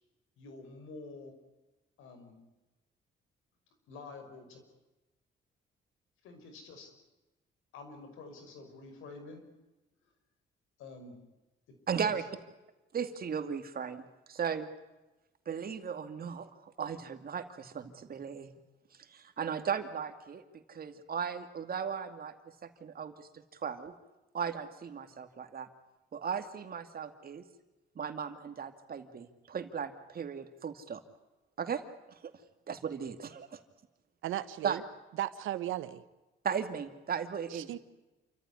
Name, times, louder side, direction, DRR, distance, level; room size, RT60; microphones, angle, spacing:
voice 1, 0.4-1.3 2.0-2.4 3.9-4.6 6.2-6.9 7.7-9.4 10.8-11.2 11.9-12.2, left 3 dB, 85° left, 6 dB, 5.8 m, -48 dB
voice 2, 11.9-12.2 12.9-14.7 15.5-18.5 18.9-20.4 20.7-22.4 22.6-23.9 24.3-25.7 26.1-27.5 28.0-31.0 31.6-31.8 32.2-32.3 32.7-33.6 34.6-34.8 36.4-37.7, right 7 dB, 50° right, 8 dB, 2.4 m, -37 dB
voice 3, 34.2-34.8 35.2-36.0 37.5-37.8, right 13 dB, 90° right, 14 dB, 1.3 m, -36 dB
28.5 x 14.5 x 9.8 m, 1.1 s
cardioid pair, 90°, 20 cm